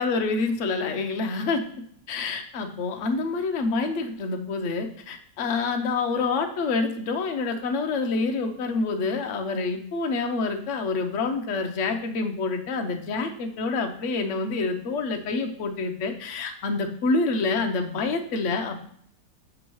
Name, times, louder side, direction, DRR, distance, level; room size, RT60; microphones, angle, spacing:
voice 1, 0.0-1.6 2.1-18.9, left 3 dB, 55° left, 5 dB, 0.9 m, -27 dB
7.6 x 6.1 x 3.1 m, 0.63 s
omnidirectional pair, 1.9 m